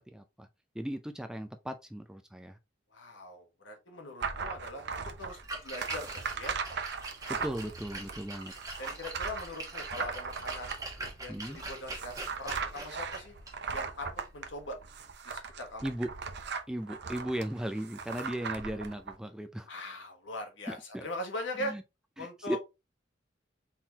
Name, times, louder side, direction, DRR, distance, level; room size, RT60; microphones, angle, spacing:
voice 1, 0.1-0.5 0.7-2.6 7.3-8.5 11.3-11.6 15.8-16.1 16.7-19.7 20.7-21.1 21.6-21.8 22.2-22.6, right 1 dB, 5° right, 0.4 m, -37 dB
voice 2, 2.9-6.6 8.8-10.8 11.2-13.3 13.7-14.1 14.3-14.8 15.2-15.8 19.7-21.7 22.2-22.6, left 1 dB, 70° left, 1.5 m, -41 dB
sound 1, 4.2-19.1, right 5 dB, 60° right, 0.7 m, -39 dB
Splash splatter, 5.2-15.1, right 2 dB, 20° right, 1.1 m, -44 dB
4.4 x 3.8 x 2.8 m
head